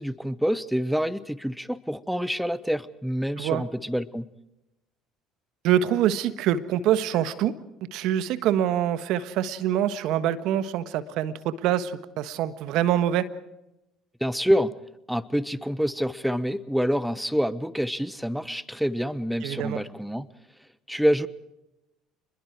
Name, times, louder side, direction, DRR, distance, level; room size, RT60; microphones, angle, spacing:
voice 1, 0.0-4.3 14.2-14.7 15.1-20.3 20.9-21.3, equal, ahead, 17 dB, 1.0 m, -27 dB
voice 2, 5.6-7.5 7.9-13.3 19.4-19.8, right 11 dB, 70° right, 13 dB, 1.4 m, -25 dB
28.0 x 21.5 x 4.7 m, 0.91 s
hypercardioid pair, 70°, 0 cm